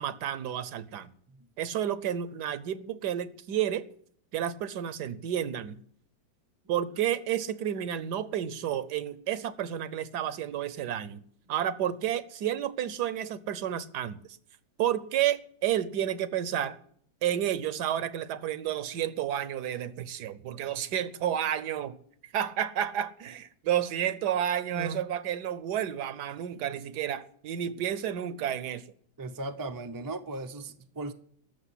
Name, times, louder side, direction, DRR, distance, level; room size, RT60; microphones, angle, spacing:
voice 1, 0.0-1.1 1.6-3.9 4.3-5.8 6.7-11.2 11.5-14.2 14.8-16.8 17.2-22.0 22.2-28.9, right 10 dB, 70° right, 1.3 m, -31 dB
voice 2, 29.2-31.1, right 2 dB, 30° right, 0.3 m, -37 dB
14.0 x 6.6 x 9.8 m
omnidirectional pair, 1.9 m